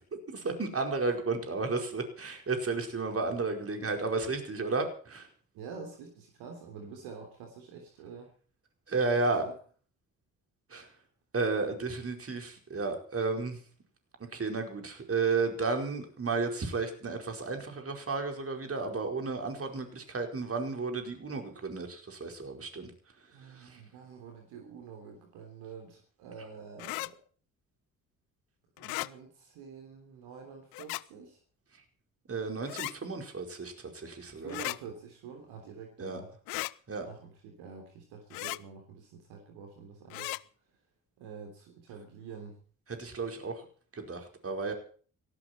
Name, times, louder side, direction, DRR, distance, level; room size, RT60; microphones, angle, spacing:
voice 1, 0.3-5.3 8.9-9.5 10.7-10.9 11.3-13.6 14.3-22.9 23.4-23.8 32.3-34.6 36.0-36.2 36.9-37.1 43.0-43.6 43.9-44.7, right 3 dB, 35° right, 4 dB, 4.9 m, -33 dB
voice 2, 5.5-8.3 9.1-9.5 23.3-27.2 28.8-31.4 34.3-36.3 37.0-40.4 41.2-42.6, right 5 dB, 65° right, 3 dB, 3.5 m, -47 dB
sound 1, 26.8-27.1 28.8-29.1 30.7-31.0 32.7-32.9 34.5-34.8 36.5-36.7 38.3-38.6 40.1-40.4, left 22 dB, 55° left, 0.7 m, -36 dB
17.5 x 17.5 x 4.5 m, 0.43 s
figure-of-eight pair, 45°, 42 cm